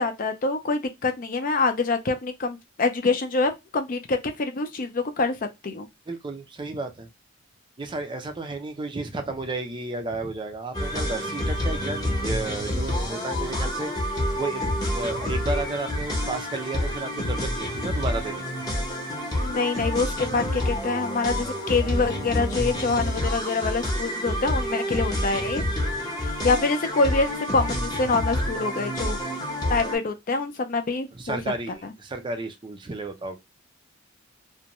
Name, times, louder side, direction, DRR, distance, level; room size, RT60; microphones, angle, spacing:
voice 1, 0.0-5.9 19.4-25.6 26.2-29.2 29.7-31.4, left 3 dB, 45° left, 0.5 m, -26 dB
voice 2, 6.1-7.1 7.8-18.5 25.9-26.1 31.1-33.4, right 2 dB, 25° right, 0.5 m, -33 dB
sound 1, 10.7-29.9, left 1 dB, 20° left, 0.8 m, -28 dB
2.5 x 2.2 x 2.9 m
head